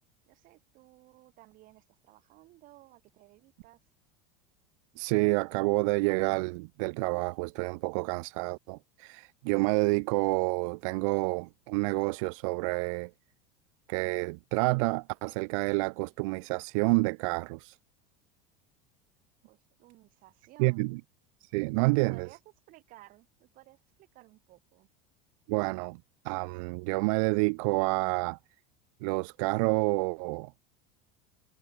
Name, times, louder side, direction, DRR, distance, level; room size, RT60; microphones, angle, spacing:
voice 1, 0.3-3.8 19.4-20.9 22.1-22.4 22.7-24.9, right 18 dB, 50° right, 7.9 m, -57 dB
voice 2, 5.0-13.1 13.9-17.8 20.6-21.0 21.4-22.3 25.5-26.0 26.2-28.4 29.0-30.6, right 29 dB, 75° right, 0.5 m, -29 dB
supercardioid pair, 135°, 17 cm